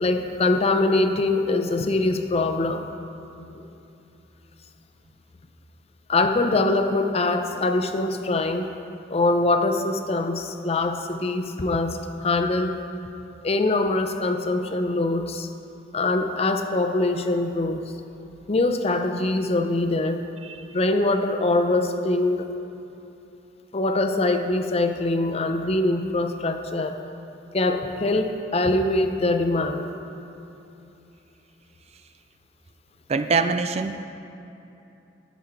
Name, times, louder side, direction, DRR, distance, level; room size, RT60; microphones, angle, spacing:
voice 1, 0.0-2.8 3.4-3.6 6.1-8.7 9.1-12.8 13.4-15.5 15.9-17.8 18.5-20.2 20.7-22.5 23.7-27.0 27.5-29.9, left 2 dB, 35° left, 7 dB, 0.5 m, -23 dB
voice 2, 33.1-34.0, right 4 dB, 35° right, 9 dB, 0.3 m, -24 dB
11.0 x 7.1 x 4.5 m, 2.9 s
head